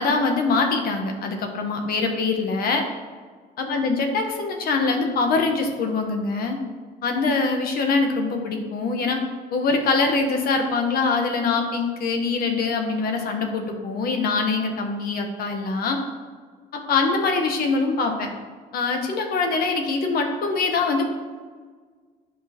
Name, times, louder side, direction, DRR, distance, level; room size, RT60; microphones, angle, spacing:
voice 1, 0.0-2.8 3.6-6.6 7.0-9.2 9.5-16.0 16.7-18.3 18.7-21.1, left 4 dB, 65° left, 3 dB, 1.3 m, -23 dB
11.0 x 5.4 x 3.1 m, 1.5 s
cardioid pair, 110°, 17 cm